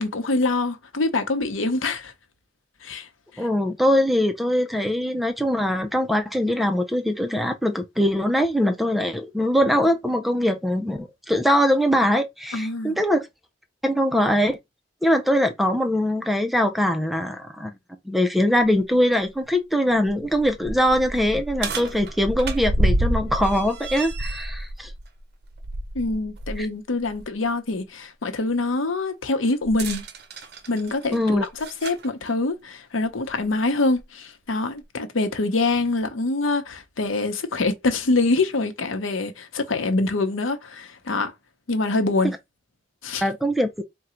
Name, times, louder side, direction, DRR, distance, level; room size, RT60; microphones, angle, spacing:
voice 1, 0.0-2.1 2.8-3.1 3.3-3.5 12.5-13.0 25.9-30.0 30.7-41.3 41.7-42.3 43.0-43.3, left 2 dB, 85° left, 0.8 m, -25 dB
voice 2, 3.4-13.3 13.8-14.6 15.0-17.7 18.1-24.9 26.6-26.7 31.1-31.4 43.2-43.7, equal, ahead, 0.4 m, -22 dB
sound 1, 18.6-18.7 19.2-19.3 19.9-26.6 27.0-27.2 29.6-32.1 33.1-33.2 34.0-34.1, right 1 dB, 55° right, 0.7 m, -29 dB
3.8 x 2.2 x 4.3 m
head